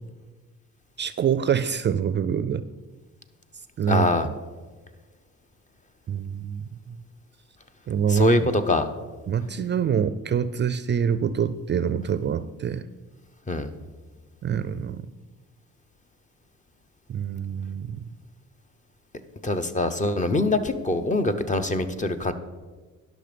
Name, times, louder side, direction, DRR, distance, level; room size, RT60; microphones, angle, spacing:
voice 1, 1.0-2.6 3.8-4.3 6.1-7.0 7.9-8.5 9.3-12.9 14.4-15.0 17.1-18.0, right 8 dB, 40° right, 14 dB, 0.4 m, -26 dB
voice 2, 3.9-4.3 8.1-8.9 13.5-13.7 19.4-22.3, left 2 dB, 25° left, 9 dB, 0.8 m, -23 dB
11.0 x 6.1 x 5.1 m, 1.4 s
cardioid pair, 90°, 30 cm